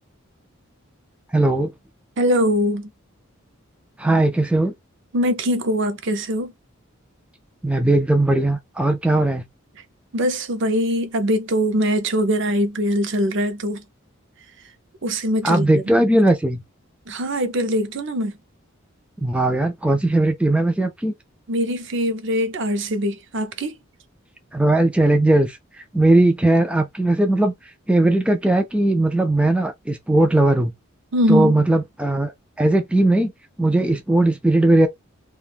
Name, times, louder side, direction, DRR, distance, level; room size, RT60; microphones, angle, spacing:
voice 1, 1.3-1.7 4.0-4.7 7.6-9.4 15.4-16.6 19.2-21.1 24.5-25.6 25.9-27.5 27.9-30.7 31.3-32.3 32.6-33.3 33.6-34.9, right 2 dB, 5° right, 0.3 m, -18 dB
voice 2, 2.2-2.9 5.1-6.5 10.1-13.8 15.0-15.8 17.1-18.3 21.5-23.8 31.1-31.5, equal, 60° right, 0.6 m, -22 dB
2.5 x 2.2 x 3.3 m
head